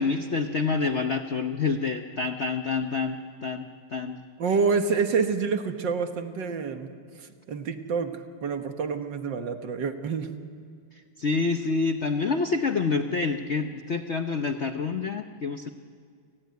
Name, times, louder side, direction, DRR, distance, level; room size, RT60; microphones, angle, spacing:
voice 1, 0.0-4.2 11.2-15.7, left 4 dB, 70° left, 7 dB, 0.6 m, -27 dB
voice 2, 4.4-10.3, right 5 dB, 60° right, 7 dB, 1.9 m, -28 dB
29.0 x 19.0 x 9.4 m, 2.1 s
omnidirectional pair, 2.4 m